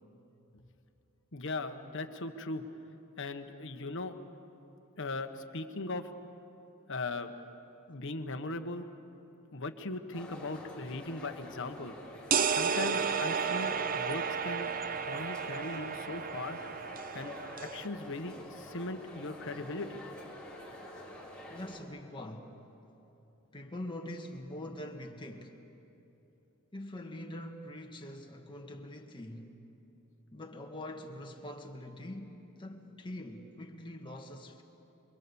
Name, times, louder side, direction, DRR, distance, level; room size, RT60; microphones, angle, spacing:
voice 1, 1.3-2.6 3.2-4.2 5.0-6.1 6.9-7.3 7.9-8.9 9.5-11.9 12.5-14.7 15.0-16.6 17.1-17.3 17.6-20.0, left 2 dB, 60° left, 1.3 m, -39 dB
sound 1, 10.1-21.8, left 1 dB, 5° left, 3.8 m, -48 dB
sound 2, 12.3-17.9, right 6 dB, 40° right, 0.6 m, -32 dB
voice 2, 21.5-22.6 23.5-25.6 26.7-29.5 30.3-34.6, left 1 dB, 25° left, 1.8 m, -44 dB
28.0 x 23.0 x 7.1 m
head